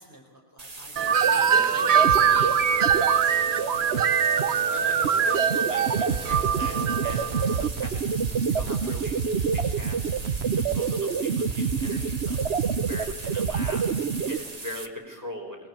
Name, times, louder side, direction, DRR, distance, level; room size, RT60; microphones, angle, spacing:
voice 1, 0.0-5.2 14.2-14.6, equal, 10° left, -1 dB, 4.5 m, -48 dB
sound 1, 0.6-14.9, right 3 dB, 30° right, 1.9 m, -40 dB
Wind chime, 1.0-7.7, right 8 dB, 80° right, 1.5 m, -25 dB
sound 2, 1.1-14.4, right 6 dB, 55° right, 1.2 m, -26 dB
voice 2, 1.3-2.4 4.7-8.1 8.5-9.2 9.5-10.0 10.5-13.9 14.3-15.7, left 1 dB, 15° right, 1 dB, 5.9 m, -39 dB
26.5 x 21.0 x 8.6 m, 1.3 s
omnidirectional pair, 1.4 m